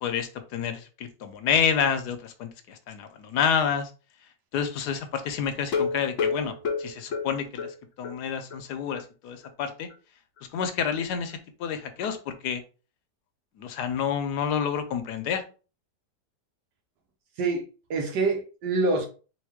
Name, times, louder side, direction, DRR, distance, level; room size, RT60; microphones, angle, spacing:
voice 1, 0.0-3.9 4.5-9.9 10.5-12.6 13.6-15.4, left 7 dB, 75° left, 1.2 m, -29 dB
sound 1, 5.6-8.2 8.5-8.6 9.0-9.1 9.4-9.5, left 5 dB, 55° left, 0.9 m, -30 dB
voice 2, 17.4-19.1, right 3 dB, 75° right, 1.4 m, -26 dB
3.8 x 3.1 x 3.5 m
omnidirectional pair, 1.9 m